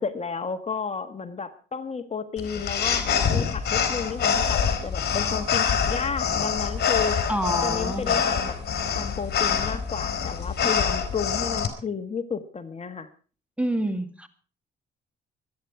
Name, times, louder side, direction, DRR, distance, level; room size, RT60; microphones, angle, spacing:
voice 1, 0.0-7.2 7.6-8.6 8.9-13.1, left 5 dB, 35° left, 9 dB, 1.5 m, -32 dB
sound 1, 2.4-11.7, left 7 dB, 55° left, 3.4 m, -25 dB
voice 2, 7.3-8.2 13.6-14.3, right 1 dB, 5° right, 10 dB, 2.0 m, -27 dB
24.5 x 9.5 x 4.7 m, 0.38 s
cardioid pair, 90°, 20 cm